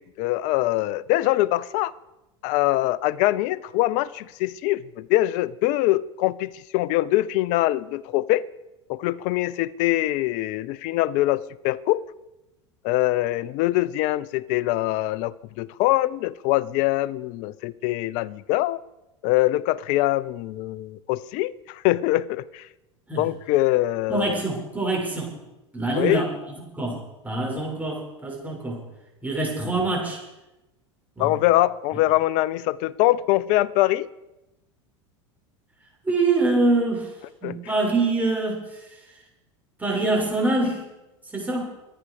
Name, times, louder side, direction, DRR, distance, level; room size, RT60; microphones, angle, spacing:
voice 1, 0.0-1.9 2.4-8.4 8.9-12.0 12.8-18.8 19.2-22.7 23.2-24.4 25.9-26.2 31.2-34.1 37.4-37.6, left 16 dB, 55° left, 20 dB, 0.6 m, -23 dB
voice 2, 24.1-25.3 25.7-26.3 26.7-28.8 29.2-30.2 31.2-31.3 36.0-37.1 37.4-38.8 39.8-40.9 41.3-41.6, right 2 dB, 10° right, -2 dB, 6.8 m, -24 dB
25.5 x 10.0 x 5.0 m, 0.98 s
hypercardioid pair, 85°, 15 cm